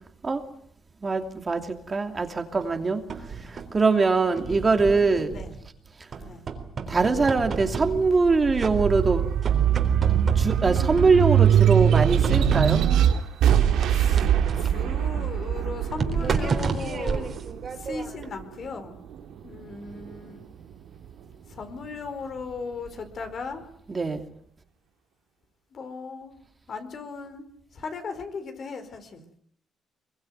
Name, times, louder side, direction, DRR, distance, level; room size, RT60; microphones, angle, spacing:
voice 1, 1.0-3.0 3.3-5.3 6.9-9.3 10.3-12.8 23.9-24.3, right 4 dB, 30° right, 6 dB, 2.8 m, -23 dB
sound 1, 2.6-3.8 4.4-5.7 6.1-8.3 8.6-9.1 9.4-11.4 11.9-13.0 13.8-18.3, right 5 dB, 50° right, 4.0 m, -32 dB
sound 2, 7.9-18.6 19.1-20.3, right 9 dB, 85° right, 2.8 m, -23 dB
voice 2, 13.8-17.3 17.6-19.0 19.4-20.4 21.5-23.6 25.7-26.4 26.7-29.3, left 4 dB, 55° left, 8 dB, 4.7 m, -37 dB
23.0 x 22.5 x 9.4 m, 0.65 s
cardioid pair, 90°, 0 cm